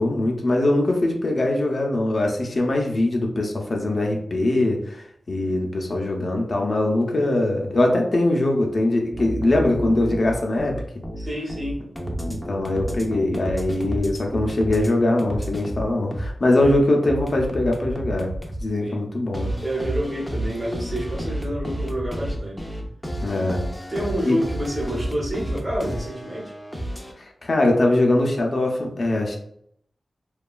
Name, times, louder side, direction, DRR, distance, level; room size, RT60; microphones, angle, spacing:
voice 1, 0.0-10.8 12.2-18.3 18.6-19.5 23.2-23.6 24.2-24.4 27.2-29.4, left 1 dB, 55° left, 1 dB, 0.5 m, -22 dB
sound 1, 9.1-14.9 15.2-18.6 19.3-27.1, right 1 dB, 5° left, 0.5 m, -31 dB
voice 2, 11.2-11.8 18.8-19.0 19.6-22.6 23.9-26.5, equal, 30° right, -3 dB, 1.0 m, -28 dB
2.8 x 2.3 x 2.3 m, 0.69 s
wide cardioid pair, 70°, 0 cm